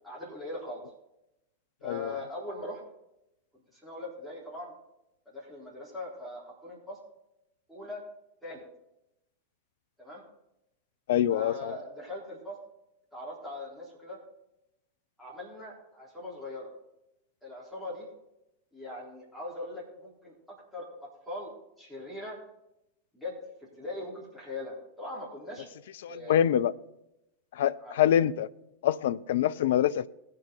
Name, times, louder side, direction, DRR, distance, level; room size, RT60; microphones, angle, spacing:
voice 1, 0.0-0.8 1.8-2.8 3.7-4.7 5.3-7.0 7.7-8.0 8.4-8.6 10.0-10.2 11.3-12.6 13.1-14.2 15.2-16.7 17.4-18.1 18.7-20.3 20.7-20.9 21.3-21.5 21.8-22.4 23.1-23.4 23.8-25.7 26.1-26.4 27.8-28.0, left 1 dB, ahead, 3.8 m, -40 dB
voice 2, 1.8-2.2 11.1-11.8 26.0-26.7 27.5-28.5 28.8-30.1, left 11 dB, 55° left, 0.4 m, -25 dB
19.5 x 6.7 x 3.8 m
figure-of-eight pair, 90°, 0 cm